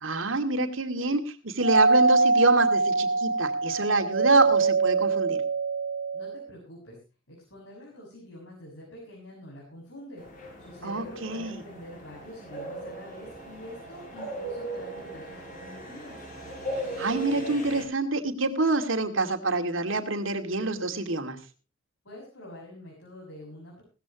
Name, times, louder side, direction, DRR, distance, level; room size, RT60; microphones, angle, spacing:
voice 1, 0.0-5.4 10.8-11.6 17.0-21.4, right 2 dB, 80° right, 6 dB, 2.4 m, -26 dB
Doorbell, 1.6-6.5, right 3 dB, 55° right, 0.7 m, -23 dB
voice 2, 6.1-7.0 7.3-16.2 22.1-23.8, left 1 dB, 80° left, -3 dB, 6.9 m, -46 dB
sound 1, 10.2-17.8, right 1 dB, 45° left, 6.2 m, -38 dB
18.5 x 14.0 x 3.1 m, 0.33 s
head